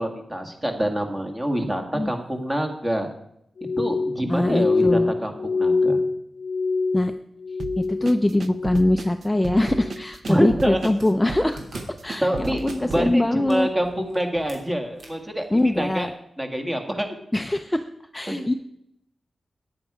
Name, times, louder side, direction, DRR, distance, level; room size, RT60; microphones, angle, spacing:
voice 1, 0.0-3.1 3.8-6.0 10.3-10.8 12.2-16.1 16.4-17.1 18.3-18.5, equal, 15° right, 4 dB, 1.7 m, -26 dB
Glass, 3.6-8.2 8.4-9.1 9.5-10.0 10.6-10.9, left 3 dB, 75° left, 0.4 m, -25 dB
voice 2, 4.3-5.1 6.9-7.1 7.8-11.6 12.0-13.7 15.5-16.1 17.3-17.9 18.1-18.5, left 1 dB, 10° left, 7 dB, 0.4 m, -22 dB
sound 1, 7.6-13.1, right 4 dB, 60° right, 0.6 m, -35 dB
sound 2, 9.8-16.1, right 2 dB, 80° right, 3.2 m, -45 dB
14.0 x 9.6 x 4.9 m, 0.76 s
wide cardioid pair, 160°, 0 cm